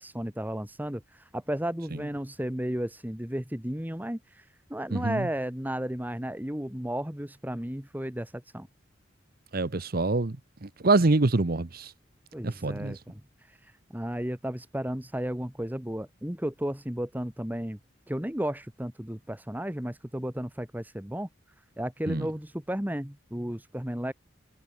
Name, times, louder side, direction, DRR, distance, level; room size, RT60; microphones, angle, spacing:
voice 1, 0.0-8.7 12.3-17.8 18.1-21.3 21.8-24.1, right 1 dB, 10° right, 1.6 m, -34 dB
voice 2, 4.9-5.3 9.5-10.4 10.6-11.9 12.4-13.0 22.1-22.3, right 2 dB, 50° right, 0.9 m, -25 dB
head